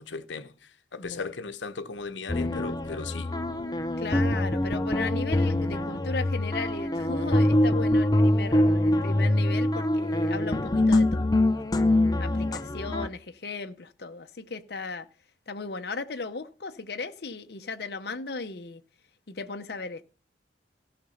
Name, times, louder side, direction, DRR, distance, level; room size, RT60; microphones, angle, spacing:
voice 1, 0.0-3.3, left 4 dB, 85° left, 0.9 m, -37 dB
voice 2, 1.0-1.3 4.0-11.3 12.2-15.1 15.5-18.8 19.3-20.0, left 4 dB, 60° left, 0.8 m, -36 dB
sound 1, 2.3-13.1, left 1 dB, 20° left, 0.5 m, -24 dB
14.5 x 5.9 x 5.5 m
head